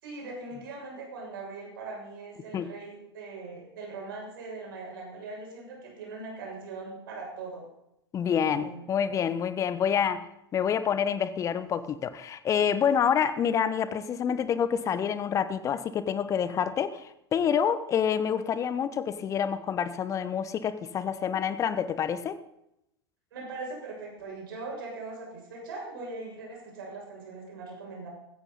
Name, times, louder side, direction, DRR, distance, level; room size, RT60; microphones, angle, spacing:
voice 1, 0.0-7.7 8.3-8.9 23.3-28.1, right 3 dB, 55° right, -2 dB, 6.8 m, -40 dB
voice 2, 8.1-22.4, left 8 dB, 25° left, 13 dB, 1.0 m, -27 dB
16.0 x 14.0 x 4.1 m, 0.84 s
figure-of-eight pair, 95°, 14 cm